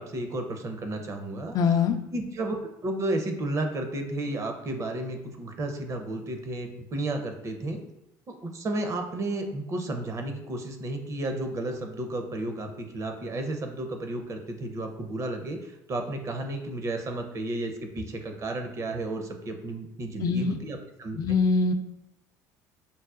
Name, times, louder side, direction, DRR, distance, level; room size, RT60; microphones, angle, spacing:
voice 1, 0.0-1.6 2.1-7.8 8.3-21.5, right 2 dB, 35° right, 5 dB, 0.6 m, -32 dB
voice 2, 1.5-2.0 20.2-20.6 21.2-21.7, left 4 dB, 45° left, 6 dB, 0.4 m, -23 dB
5.4 x 2.1 x 2.4 m, 0.87 s
hypercardioid pair, 75°, 9 cm